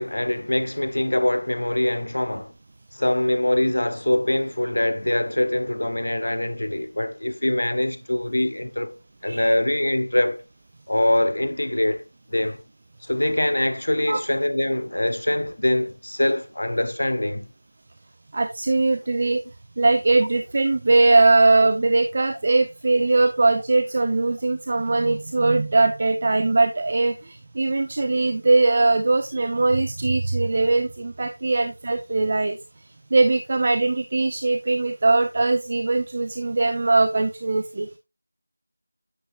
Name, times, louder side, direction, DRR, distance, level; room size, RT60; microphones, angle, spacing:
voice 1, 0.0-2.5 2.9-8.9 9.2-10.4 10.9-12.0 12.3-12.6 13.0-17.5, left 1 dB, 60° left, 1.1 m, -23 dB
voice 2, 18.3-19.4 19.8-32.6 33.1-37.9, right 3 dB, 30° right, 0.5 m, -20 dB
9.4 x 7.7 x 2.5 m
figure-of-eight pair, 170°, 0 cm